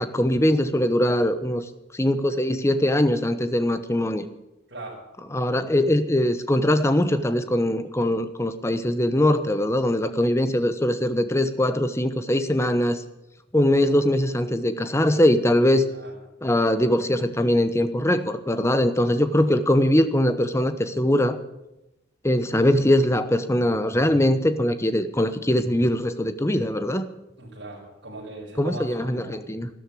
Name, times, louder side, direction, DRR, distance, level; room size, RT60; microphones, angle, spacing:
voice 1, 0.0-1.6 1.9-4.3 5.3-13.0 13.5-15.9 16.4-21.4 22.2-27.1 28.6-29.7, left 1 dB, 15° left, 10 dB, 1.0 m, -22 dB
voice 2, 4.7-5.0 15.9-16.2 27.4-29.5, right 2 dB, 65° right, -6 dB, 5.6 m, -39 dB
13.0 x 13.0 x 8.5 m, 0.92 s
head